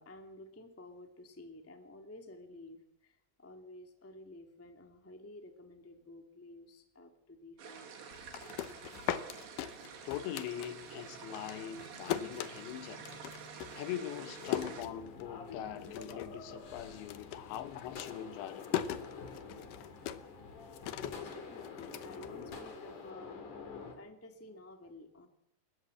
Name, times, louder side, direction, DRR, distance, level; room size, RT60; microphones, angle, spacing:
voice 1, 0.0-7.9 21.0-25.3, left 2 dB, 10° left, 0.6 m, -52 dB
sound 1, 7.6-14.8, right 6 dB, 75° right, 4.6 m, -49 dB
sound 2, 8.1-11.1 11.3-15.5 15.8-16.4 16.7-22.9, left 11 dB, 75° left, 2.0 m, -40 dB
voice 2, 10.1-13.0 13.7-18.7, left 11 dB, 90° left, 3.5 m, -42 dB
sound 3, 14.4-24.0, left 5 dB, 50° left, 4.0 m, -47 dB
28.5 x 13.5 x 7.9 m
omnidirectional pair, 5.0 m